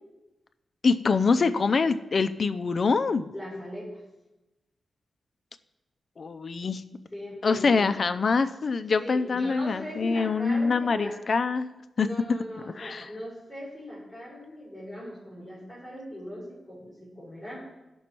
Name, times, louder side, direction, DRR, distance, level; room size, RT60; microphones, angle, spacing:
voice 1, 0.8-3.3 6.2-6.8 7.4-11.7 12.0-12.1 12.8-13.1, left 4 dB, 40° left, 11 dB, 0.5 m, -25 dB
voice 2, 3.3-4.0 7.1-7.9 9.0-11.1 12.0-17.6, equal, ahead, -7 dB, 4.2 m, -39 dB
15.5 x 6.1 x 4.4 m, 1.0 s
wide cardioid pair, 180°, 0 cm